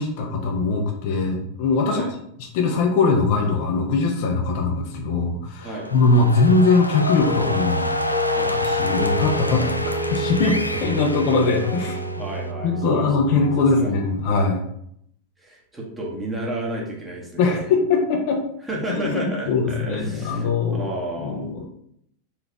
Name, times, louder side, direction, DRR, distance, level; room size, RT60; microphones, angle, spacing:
voice 1, 0.0-2.0 2.5-7.9 8.4-9.6 10.1-12.0 12.6-14.6 17.4-18.4 18.9-20.9 21.2-21.7, left 3 dB, 45° left, 1 dB, 0.7 m, -21 dB
sound 1, 5.6-12.5, left 1 dB, 85° left, 0.3 m, -29 dB
sound 2, 7.2-14.2, equal, 40° right, 0.9 m, -29 dB
voice 2, 12.2-13.4 13.8-13.9 15.4-17.6 18.7-21.5, right 1 dB, 10° right, -3 dB, 1.4 m, -31 dB
4.1 x 3.3 x 3.5 m, 0.72 s
figure-of-eight pair, 90°, 0 cm